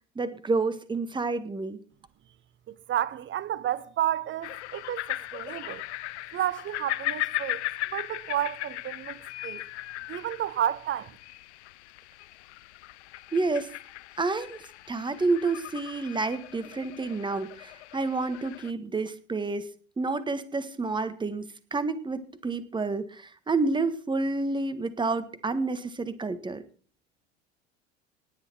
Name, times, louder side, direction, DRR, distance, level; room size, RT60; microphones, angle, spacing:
voice 1, 0.1-1.8 13.3-13.7 14.2-14.6 14.9-19.7 20.0-26.6, right 3 dB, 10° right, 1.6 m, -29 dB
voice 2, 2.7-5.8 6.3-7.6 7.9-9.6 10.1-11.2, right 11 dB, 30° right, 0.9 m, -31 dB
sound 1, 4.4-18.7, left 17 dB, 65° left, 0.7 m, -38 dB
19.0 x 9.3 x 4.6 m
figure-of-eight pair, 75°, 37 cm